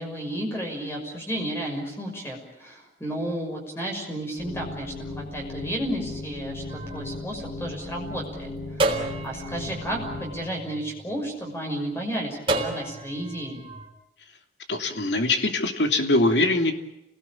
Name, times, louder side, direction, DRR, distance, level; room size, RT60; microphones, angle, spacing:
voice 1, 0.0-8.5 8.8-13.6, right 1 dB, 15° left, 1 dB, 6.1 m, -32 dB
sound 1, 4.4-10.4, left 2 dB, 60° left, 5.4 m, -37 dB
sound 2, 6.7-8.1 8.8-11.3 12.5-13.9, right 2 dB, 30° right, 4.0 m, -31 dB
voice 2, 14.7-16.7, left 2 dB, 80° left, 5 dB, 3.0 m, -22 dB
29.0 x 19.5 x 8.7 m, 0.87 s
head